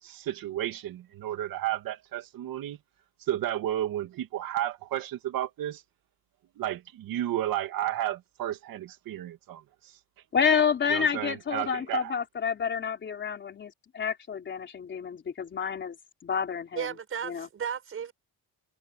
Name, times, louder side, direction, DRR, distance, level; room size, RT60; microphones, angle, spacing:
voice 1, 0.0-2.8 3.2-5.8 6.6-10.0 10.9-12.1, right 12 dB, 65° right, 2.3 m, -32 dB
voice 2, 10.3-16.0 16.2-16.9 17.2-17.5, left 6 dB, 30° left, 3.7 m, -29 dB
voice 3, 16.7-18.1, right 8 dB, 35° right, 6.9 m, -34 dB
cardioid pair, 175°, 36 cm